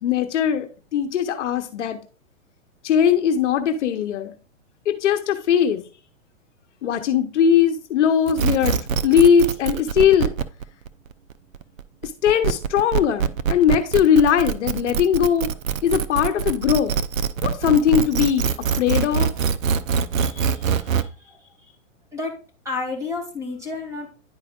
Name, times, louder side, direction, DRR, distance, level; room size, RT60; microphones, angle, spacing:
voice 1, 0.0-2.0 2.8-4.3 4.9-5.8 6.8-8.8 9.0-10.3 12.0-15.5 15.8-16.9 17.4-18.5 18.8-19.3, left 8 dB, 65° left, 1.0 m, -19 dB
sound 1, 8.3-21.0, right 7 dB, 80° right, 0.7 m, -23 dB
voice 2, 20.2-21.7 22.1-22.3 22.6-24.1, left 3 dB, 10° right, 2.5 m, -32 dB
10.5 x 4.9 x 2.4 m
hypercardioid pair, 135°, 39 cm